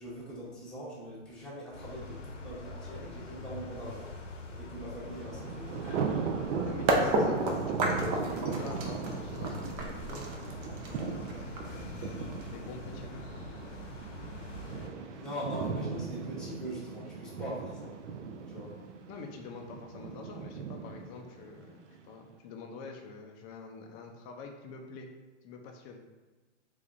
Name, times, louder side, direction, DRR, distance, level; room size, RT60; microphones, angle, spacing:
voice 1, 0.0-4.1 4.6-5.9 6.9-7.5 15.1-18.0 18.5-18.8, equal, ahead, -8 dB, 0.9 m, -42 dB
sound 1, 1.7-14.9, left 2 dB, 85° left, 0.9 m, -44 dB
Thunder, 5.1-22.1, right 5 dB, 70° right, 0.6 m, -38 dB
voice 2, 6.6-7.5 7.8-10.3 10.9-11.2 12.5-13.2 19.1-25.1 25.4-26.0, left 4 dB, 30° left, 3 dB, 0.4 m, -46 dB
sound 2, 6.9-12.7, right 2 dB, 30° right, 0.5 m, -31 dB
3.6 x 3.4 x 2.5 m, 1.3 s
hypercardioid pair, 115°, 36 cm